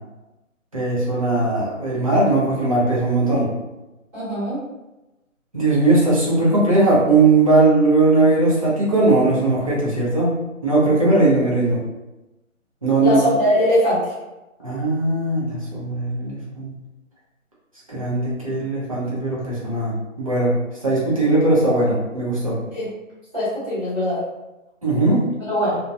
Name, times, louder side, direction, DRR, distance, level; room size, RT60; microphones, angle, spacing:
voice 1, 0.7-3.5 5.5-10.3 10.6-11.8 12.8-13.2 14.6-16.7 17.9-20.5 20.8-22.6 24.8-25.2, right 2 dB, 25° right, -7 dB, 0.5 m, -19 dB
voice 2, 4.1-4.6 13.0-14.1 22.7-22.9 23.3-24.2 25.4-25.8, equal, 10° right, -14 dB, 0.9 m, -21 dB
2.7 x 2.1 x 2.3 m, 1.0 s
figure-of-eight pair, 160°, 40 cm